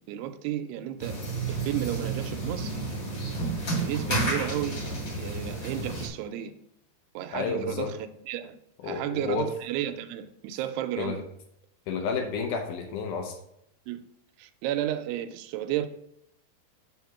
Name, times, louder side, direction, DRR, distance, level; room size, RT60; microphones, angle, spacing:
voice 1, 0.1-1.2 1.5-2.8 3.8-6.5 7.1-8.0 8.3-8.6 8.8-11.2 13.9-14.0 14.4-15.9, right 11 dB, 85° right, 2.6 m, -33 dB
sound 1, 1.0-6.1, right 2 dB, 40° left, 1.7 m, -31 dB
voice 2, 7.3-7.9 8.8-9.5 11.0-11.2 11.9-13.4, left 5 dB, 90° left, 1.8 m, -30 dB
7.4 x 3.6 x 5.8 m
omnidirectional pair, 4.7 m